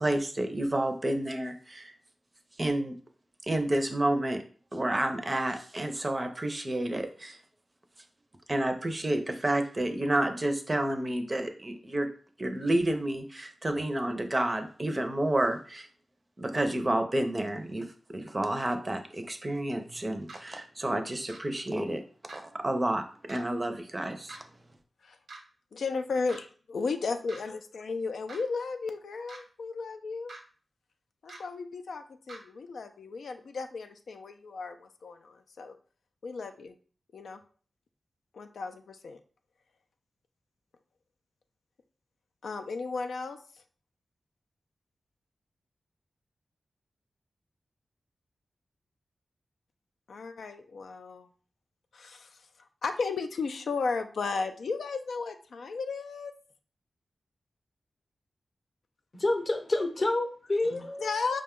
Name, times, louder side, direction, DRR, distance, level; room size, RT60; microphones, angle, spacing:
voice 1, 0.0-1.9 2.6-2.9 3.4-4.4 4.7-7.4 8.5-12.1 12.4-15.9 16.4-22.0 22.3-24.4, right 1 dB, 25° right, 6 dB, 0.5 m, -30 dB
sound 1, 20.3-20.4 21.3-21.4 22.3-22.4 23.3-23.4 24.3-24.4 25.3-25.4 26.3-26.4 27.3-27.4 28.3-28.4 29.3-29.4 30.3-30.4 31.3-31.4 32.3-32.4, right 3 dB, 85° right, 0.9 m, -44 dB
voice 2, 25.7-30.3 31.2-35.7 36.2-36.7 37.1-37.4 38.3-39.2 42.4-43.4 50.1-51.3 51.9-52.5 52.8-56.3 60.8-61.4, left 4 dB, 85° left, 6 dB, 0.3 m, -34 dB
voice 3, 59.1-61.4, left 2 dB, 35° left, 4 dB, 0.7 m, -29 dB
4.9 x 2.2 x 3.6 m, 0.42 s
wide cardioid pair, 105°, 0 cm